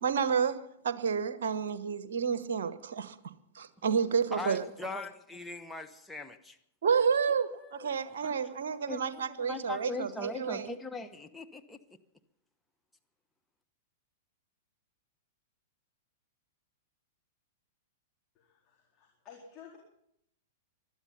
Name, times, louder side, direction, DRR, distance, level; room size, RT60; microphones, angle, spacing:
voice 1, 0.0-3.1 3.5-4.7 6.8-10.7, right 6 dB, 60° right, 14 dB, 1.2 m, -30 dB
voice 2, 4.3-6.6 7.3-7.9 8.2-11.8, left 2 dB, 5° left, 5 dB, 1.1 m, -41 dB
voice 3, 18.3-19.8, left 7 dB, 30° left, -2 dB, 4.1 m, -53 dB
20.5 x 12.5 x 5.6 m, 0.75 s
figure-of-eight pair, 100°, 0 cm